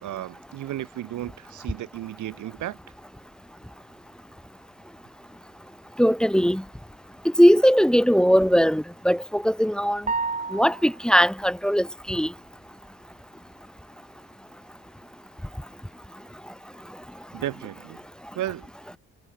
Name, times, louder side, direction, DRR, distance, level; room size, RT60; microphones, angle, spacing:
voice 1, 0.0-2.8 17.3-18.0 18.4-18.7, right 13 dB, 75° right, 1.9 m, -33 dB
voice 2, 6.0-6.6 7.4-10.1 10.5-12.3, equal, 5° left, 1.6 m, -20 dB
sound 1, 10.1-11.1, right 4 dB, 25° right, 2.9 m, -30 dB
cardioid pair, 90°, 30 cm